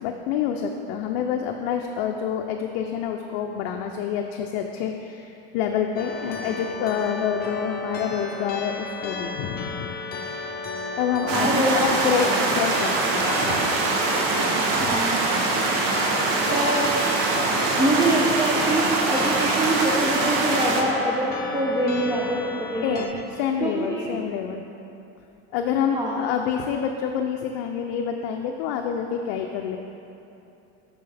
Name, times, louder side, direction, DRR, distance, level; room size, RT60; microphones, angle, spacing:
voice 1, 0.0-9.9 11.0-13.7 14.7-15.0 22.8-24.7 25.5-29.8, left 8 dB, 70° left, 3 dB, 0.5 m, -27 dB
sound 1, 6.0-23.1, left 3 dB, 30° left, 0.7 m, -34 dB
voice 2, 11.3-12.0 14.8-15.1 16.2-16.9 17.8-23.0 23.6-24.0 25.9-26.2, right 1 dB, 15° right, -3 dB, 0.7 m, -25 dB
sound 2, 11.3-20.8, right 3 dB, 75° right, 1.0 m, -23 dB
6.8 x 6.2 x 3.4 m, 2.8 s
supercardioid pair, 115°, 30 cm